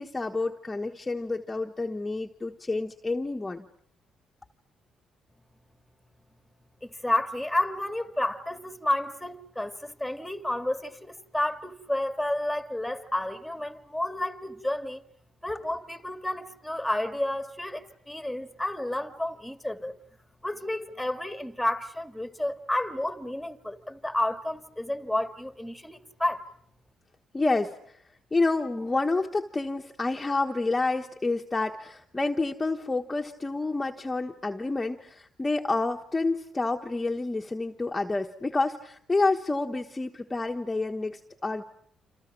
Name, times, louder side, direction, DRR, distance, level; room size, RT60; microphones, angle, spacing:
voice 1, 0.0-3.7 27.3-28.0 28.3-41.6, left 3 dB, 20° left, 1.2 m, -29 dB
voice 2, 6.8-15.0 15.4-20.0 20.4-26.5, left 1 dB, ahead, 1.9 m, -31 dB
29.0 x 27.0 x 6.1 m
cardioid pair, 90°, 0 cm